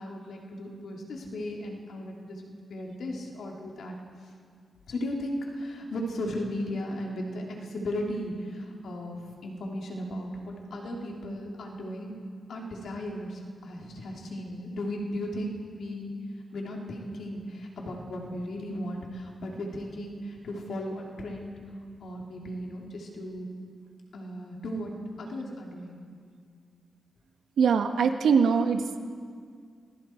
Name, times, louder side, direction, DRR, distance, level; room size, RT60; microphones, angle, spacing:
voice 1, 0.0-3.9 4.9-9.2 9.4-12.2 12.5-16.1 16.5-21.6 22.0-23.5 24.1-24.9 25.2-26.0, left 1 dB, 75° left, 0 dB, 3.1 m, -36 dB
voice 2, 27.6-28.8, right 6 dB, 90° right, 5 dB, 1.5 m, -22 dB
28.5 x 21.0 x 4.6 m, 2.1 s
wide cardioid pair, 105°, 0 cm